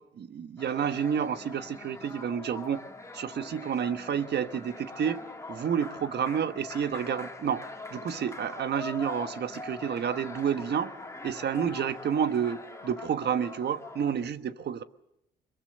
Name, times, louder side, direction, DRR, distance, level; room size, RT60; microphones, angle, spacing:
voice 1, 0.2-2.8 3.1-5.2 5.5-7.6 7.9-10.9 11.2-14.8, right 8 dB, 55° right, 11 dB, 1.2 m, -30 dB
sound 1, 0.6-14.3, left 2 dB, 15° left, 2.2 m, -43 dB
22.5 x 22.5 x 6.6 m, 0.82 s
cardioid pair, 90°, 20 cm